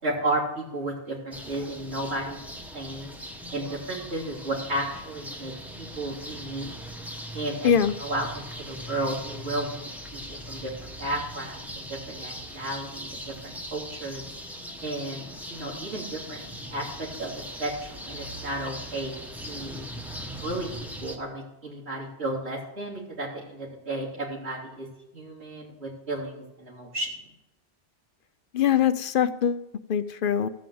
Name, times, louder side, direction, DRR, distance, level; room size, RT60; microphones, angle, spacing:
voice 1, 0.0-2.4 2.7-3.2 3.5-6.8 7.3-7.7 8.0-14.2 14.8-15.2 15.5-16.4 16.7-19.2 19.5-19.8 20.4-24.9 25.1-27.1, right 1 dB, 90° right, -4 dB, 3.3 m, -33 dB
sound 1, 1.3-21.2, equal, ahead, 1.0 m, -40 dB
voice 2, 28.5-30.5, left 8 dB, 60° left, 13 dB, 0.7 m, -23 dB
14.5 x 5.1 x 7.7 m, 0.93 s
omnidirectional pair, 1.1 m